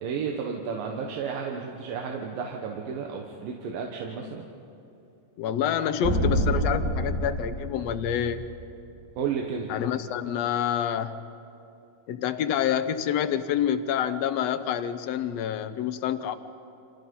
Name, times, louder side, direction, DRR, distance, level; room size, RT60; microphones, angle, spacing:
voice 1, 0.0-4.5 9.2-9.7, right 6 dB, 90° right, 1 dB, 3.1 m, -32 dB
voice 2, 5.4-8.4 9.7-11.2 12.1-16.4, left 9 dB, 70° left, 10 dB, 1.6 m, -27 dB
sound 1, 6.0-8.7, right 1 dB, 25° right, 3.1 m, -27 dB
30.0 x 27.0 x 5.5 m, 2.8 s
omnidirectional pair, 3.9 m